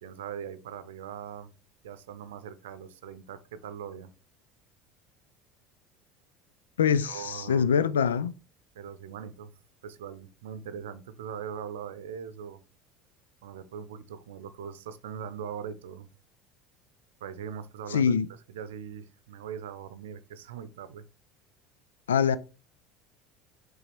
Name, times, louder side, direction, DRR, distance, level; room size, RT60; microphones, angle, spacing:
voice 1, 0.0-1.5 1.8-4.1 7.0-7.7 8.7-9.5 9.8-12.6 13.4-16.1 17.2-18.1 18.5-21.0, right 8 dB, 75° right, 0.6 m, -41 dB
voice 2, 6.8-8.3 17.9-18.3 22.1-22.4, left 7 dB, 80° left, 0.4 m, -24 dB
5.9 x 3.8 x 4.3 m
hypercardioid pair, 70°, 0 cm